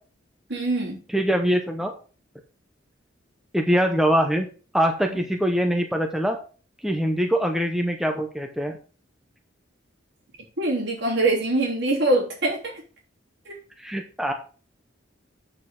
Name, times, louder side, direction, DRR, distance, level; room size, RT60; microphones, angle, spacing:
voice 1, 0.5-1.0 10.6-12.7 13.4-13.5, right 2 dB, 65° right, -3 dB, 3.3 m, -23 dB
voice 2, 1.1-1.9 3.5-4.5 4.7-6.4 6.8-8.8 13.8-14.3, equal, ahead, 3 dB, 0.7 m, -23 dB
8.0 x 6.4 x 3.7 m, 0.38 s
head